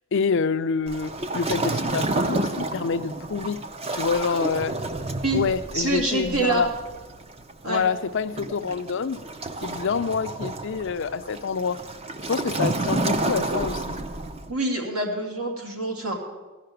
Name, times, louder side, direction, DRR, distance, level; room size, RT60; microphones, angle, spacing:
voice 1, 0.1-3.6 3.9-4.7 5.3-6.7 7.6-9.2 9.6-11.8 12.3-14.0, left 5 dB, 55° left, 12 dB, 0.4 m, -27 dB
Waves surf, 0.9-14.5, right 2 dB, 25° right, 0.6 m, -30 dB
voice 2, 5.7-6.6 7.6-7.8 14.5-16.2, right 2 dB, 75° right, 0 dB, 2.5 m, -26 dB
15.0 x 5.8 x 9.2 m, 1.2 s
head